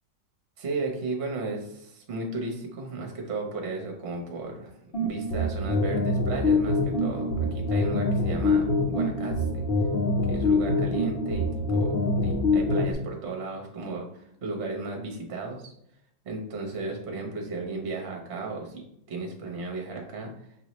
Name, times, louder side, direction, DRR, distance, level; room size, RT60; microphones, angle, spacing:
voice 1, 0.6-9.7 10.3-15.7 16.2-18.7 19.1-20.3, right 3 dB, 45° right, 1 dB, 1.1 m, -35 dB
sound 1, 4.9-12.9, left 2 dB, 45° left, 0.9 m, -25 dB
6.2 x 2.7 x 3.1 m, 0.72 s
omnidirectional pair, 1.9 m